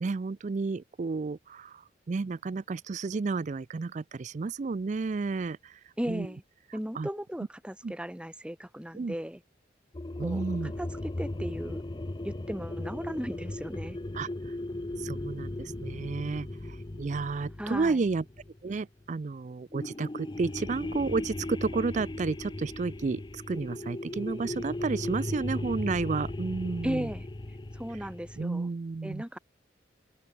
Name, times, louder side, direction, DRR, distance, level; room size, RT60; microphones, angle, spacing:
voice 1, 0.0-6.3 6.7-7.1 7.8-7.9 8.9-9.1 10.2-10.7 14.1-14.6 15.0-18.2 18.6-27.1 27.9-28.1 28.4-29.2, right 4 dB, 40° right, 0.4 m, -32 dB
voice 2, 6.0-6.4 6.7-9.4 10.2-10.4 10.8-11.8 12.2-14.0 17.6-18.0 26.8-27.3 27.7-28.7 29.0-29.4, equal, 5° right, 1.2 m, -36 dB
sound 1, 9.9-19.0 19.7-28.5, left 1 dB, 25° left, 0.6 m, -37 dB
head